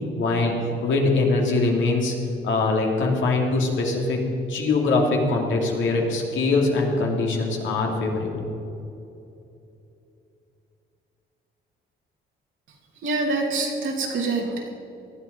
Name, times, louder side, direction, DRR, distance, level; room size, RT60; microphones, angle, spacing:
voice 1, 0.2-0.5 0.8-2.1 2.4-4.2 4.5-8.4, left 3 dB, 75° left, 0 dB, 2.9 m, -22 dB
voice 2, 13.0-14.7, right 3 dB, 75° right, 0 dB, 2.8 m, -25 dB
19.0 x 12.5 x 5.3 m, 2.8 s
cardioid pair, 90°, 20 cm